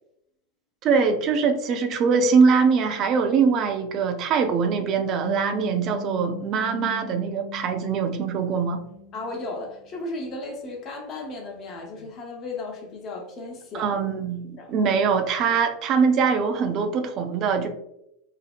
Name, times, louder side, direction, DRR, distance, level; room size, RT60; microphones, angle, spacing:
voice 1, 0.8-8.8 13.7-17.7, right 5 dB, 45° right, 7 dB, 0.4 m, -22 dB
sound 1, 5.2-9.9, left 3 dB, 70° right, 1.0 m, -39 dB
voice 2, 9.1-14.0 14.6-14.9 15.5-15.6, left 2 dB, 40° left, 1 dB, 0.7 m, -35 dB
3.1 x 2.0 x 2.3 m, 0.80 s
figure-of-eight pair, 85°, 0 cm